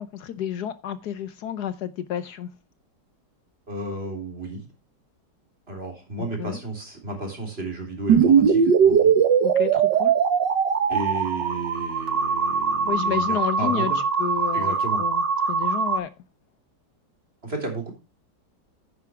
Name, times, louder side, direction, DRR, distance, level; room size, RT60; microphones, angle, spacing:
voice 1, 0.0-2.5 6.2-6.6 9.4-10.1 12.8-13.9 14.2-16.1, left 10 dB, 70° left, 1.3 m, -31 dB
voice 2, 3.7-4.6 5.7-9.1 10.9-14.0 14.5-15.0 17.4-17.9, right 2 dB, 35° right, 4.0 m, -33 dB
sound 1, 8.1-16.0, right 6 dB, 80° right, 1.9 m, -21 dB
10.5 x 9.6 x 3.4 m
omnidirectional pair, 1.9 m